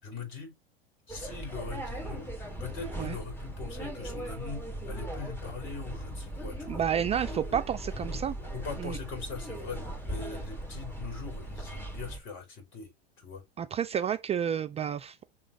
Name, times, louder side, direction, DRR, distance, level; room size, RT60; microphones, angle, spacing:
voice 1, 0.0-0.5 1.1-2.3 2.6-6.8 7.2-7.6 7.9-8.1 8.5-12.9 13.2-13.4, left 5 dB, 40° left, 4.6 m, -41 dB
sound 1, 1.1-12.2, right 1 dB, 5° left, 1.9 m, -38 dB
voice 2, 6.7-8.3 8.8-9.0 13.6-15.2, right 8 dB, 20° right, 0.4 m, -30 dB
5.8 x 3.8 x 6.0 m
hypercardioid pair, 90°, 30 cm